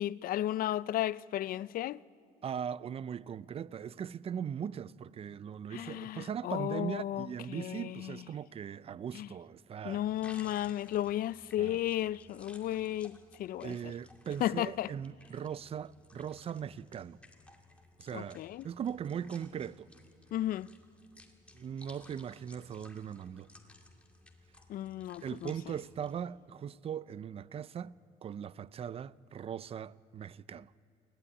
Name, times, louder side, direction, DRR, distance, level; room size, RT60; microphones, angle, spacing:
voice 1, 0.0-2.0 5.7-8.2 9.1-9.3 9.8-13.8 14.4-14.9 18.1-18.6 20.3-20.7 24.7-25.5, left 13 dB, 60° left, 0.4 m, -34 dB
voice 2, 2.4-10.0 11.6-11.8 13.6-17.2 18.0-18.4 18.6-19.9 21.5-23.5 25.2-30.7, right 8 dB, 35° right, 0.5 m, -39 dB
sound 1, 10.0-26.2, left 2 dB, 5° left, 2.2 m, -59 dB
21.0 x 15.0 x 9.8 m
cardioid pair, 110°, 17 cm